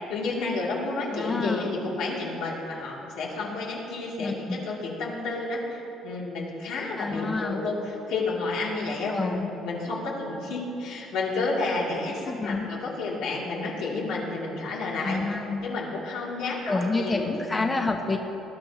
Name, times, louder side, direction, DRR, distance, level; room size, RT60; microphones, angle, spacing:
voice 1, 0.1-15.2 15.6-17.7, left 3 dB, 85° left, -4 dB, 2.9 m, -31 dB
voice 2, 1.1-1.8 4.2-4.6 7.0-7.6 9.1-9.5 12.3-12.7 15.0-15.7 16.7-18.2, left 3 dB, 15° left, 3 dB, 0.7 m, -28 dB
19.5 x 12.5 x 3.0 m, 3.0 s
cardioid pair, 155°, 0 cm